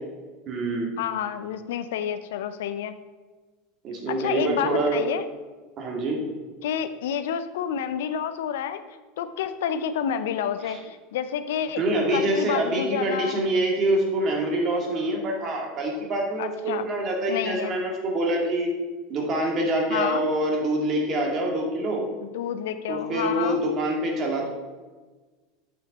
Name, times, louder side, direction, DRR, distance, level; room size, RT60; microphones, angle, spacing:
voice 1, 0.5-0.9 3.8-5.0 5.8-6.2 10.7-10.8 11.8-18.7 19.1-22.0 22.9-24.5, right 1 dB, 45° right, 0 dB, 2.2 m, -25 dB
voice 2, 1.0-2.9 4.1-5.3 6.6-8.8 9.2-11.8 12.1-13.4 16.4-16.9 17.3-17.8 19.9-20.3 22.2-23.6, left 9 dB, 80° left, 10 dB, 0.5 m, -29 dB
8.0 x 6.1 x 4.1 m, 1.3 s
hypercardioid pair, 100°, 0 cm